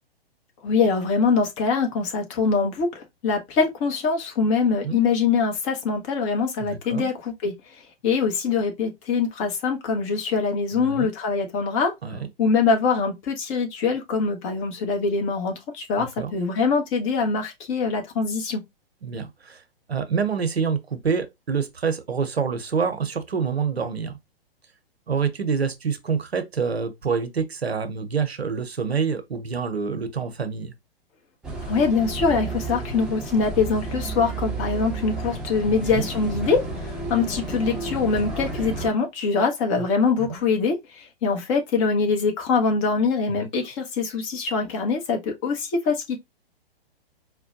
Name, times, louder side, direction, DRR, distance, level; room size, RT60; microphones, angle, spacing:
voice 1, 0.6-7.5 8.0-11.9 12.4-18.6 31.7-46.2, left 4 dB, 35° left, 1.0 m, -23 dB
voice 2, 6.6-7.1 10.7-11.1 12.0-12.3 16.0-16.4 19.0-19.6 19.9-24.2 25.1-30.7 35.7-36.1 39.8-39.9 40.2-40.4 43.3-43.5, right 6 dB, 90° right, 0.8 m, -27 dB
sound 1, 31.4-38.9, right 2 dB, 5° right, 0.6 m, -31 dB
4.4 x 2.2 x 2.7 m
figure-of-eight pair, 120°, 30 cm